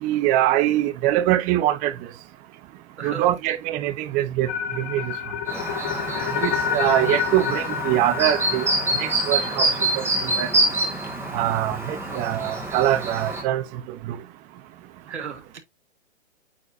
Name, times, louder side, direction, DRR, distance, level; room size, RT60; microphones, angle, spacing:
voice 1, 0.0-1.9 3.0-4.5 4.8-5.1 6.4-8.7 8.9-9.7 10.0-10.5 11.3-13.6 14.1-14.2, right 13 dB, 20° right, 0.8 m, -23 dB
voice 2, 3.0-3.6 6.1-6.3 12.1-12.5 15.0-15.6, right 5 dB, 75° right, 2.7 m, -37 dB
sound 1, 4.5-10.6, left 8 dB, 15° left, 0.3 m, -30 dB
Chirp tweet, 5.5-13.4, right 2 dB, 5° right, 2.0 m, -26 dB
8.6 x 4.2 x 2.7 m
hypercardioid pair, 135°, 35 cm